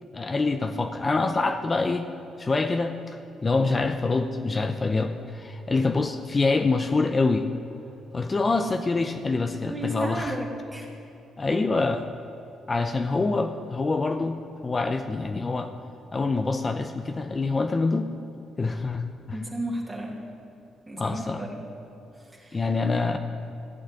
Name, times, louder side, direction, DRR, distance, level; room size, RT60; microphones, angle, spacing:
voice 1, 0.1-2.1 2.4-7.5 8.1-10.3 11.4-12.0 12.7-15.7 16.1-18.1 18.6-19.4 21.0-21.4 22.5-23.2, left 3 dB, 30° left, 7 dB, 0.7 m, -26 dB
voice 2, 9.6-10.9 11.5-11.6 19.3-20.3 20.9-21.7 22.3-22.7 23.1-23.2, right 1 dB, 20° right, -3 dB, 2.1 m, -33 dB
15.0 x 6.3 x 9.6 m, 2.8 s
cardioid pair, 90°, 0 cm